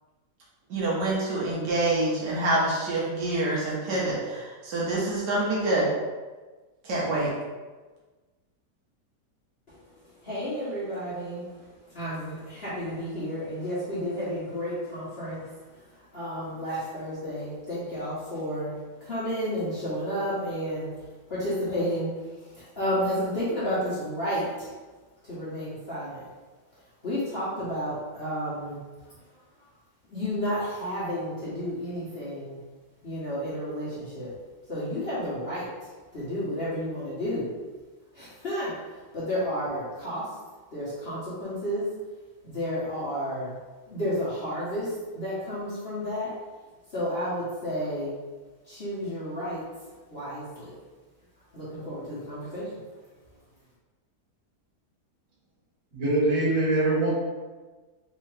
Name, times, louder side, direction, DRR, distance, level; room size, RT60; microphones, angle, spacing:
voice 1, 0.7-5.9 6.8-7.3, right 2 dB, 80° right, -6 dB, 1.6 m, -26 dB
voice 2, 9.7-21.0 21.3-24.7 25.2-26.3 27.0-28.8 30.1-32.6 33.0-34.3 34.7-37.5 38.1-38.7 39.1-40.3 40.7-41.9 42.4-43.6 43.9-46.3 46.9-48.1 48.7-49.6 50.1-50.8 51.5-52.7, equal, 45° left, -10 dB, 1.1 m, -32 dB
voice 3, 55.9-57.1, right 2 dB, 50° right, -10 dB, 1.9 m, -23 dB
3.8 x 2.7 x 3.2 m, 1.3 s
omnidirectional pair, 1.8 m